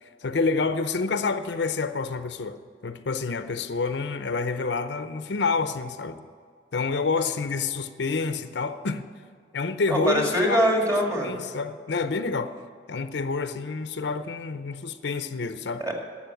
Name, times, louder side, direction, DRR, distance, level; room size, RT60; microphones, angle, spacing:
voice 1, 0.0-6.2 6.7-9.0 9.5-10.7 11.2-12.5 12.9-15.9, left 4 dB, 70° left, 0.6 m, -28 dB
voice 2, 9.9-11.4 15.8-15.9, equal, 20° right, 2.3 m, -23 dB
12.0 x 7.3 x 9.0 m
head